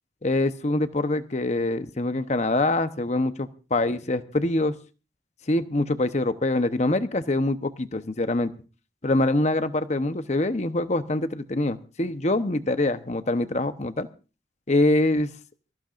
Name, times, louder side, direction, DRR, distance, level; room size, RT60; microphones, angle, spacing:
voice 1, 0.2-4.8 5.5-8.5 9.0-14.1 14.7-15.3, left 2 dB, 40° left, 10 dB, 0.9 m, -24 dB
25.0 x 15.0 x 2.5 m, 0.33 s
head